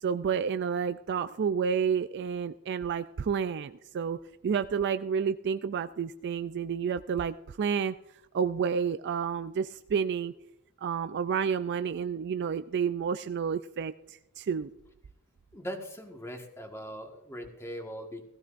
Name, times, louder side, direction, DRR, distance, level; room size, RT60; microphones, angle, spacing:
voice 1, 0.0-4.2 4.4-7.9 8.3-10.3 10.8-14.7, right 7 dB, 50° right, 10 dB, 0.3 m, -30 dB
voice 2, 15.5-18.3, equal, 10° left, 3 dB, 1.5 m, -40 dB
16.5 x 15.0 x 2.5 m, 0.89 s
head